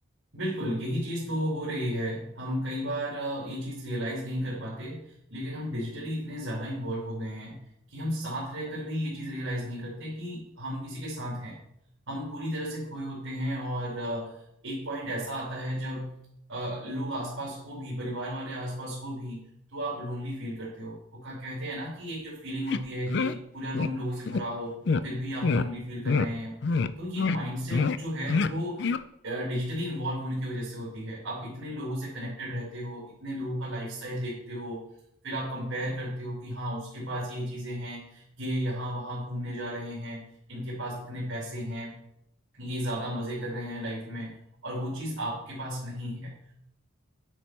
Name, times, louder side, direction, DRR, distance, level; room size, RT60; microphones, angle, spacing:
voice 1, 0.3-7.6 7.9-11.6 12.1-16.1 16.5-19.4 19.7-26.6 27.0-28.9 29.2-34.8 35.2-40.2 40.5-41.9 42.6-44.4 44.6-46.5, equal, 75° right, -7 dB, 3.1 m, -34 dB
sound 1, 22.7-22.8 23.1-23.3 23.7-23.9 24.3-24.4 24.9-25.0 25.4-25.7 26.0-26.3 26.6-26.9 27.2-27.4 27.7-28.0 28.3-28.5 28.8-29.0, left 4 dB, 55° left, 0.4 m, -26 dB
9.8 x 4.4 x 6.0 m, 0.78 s
head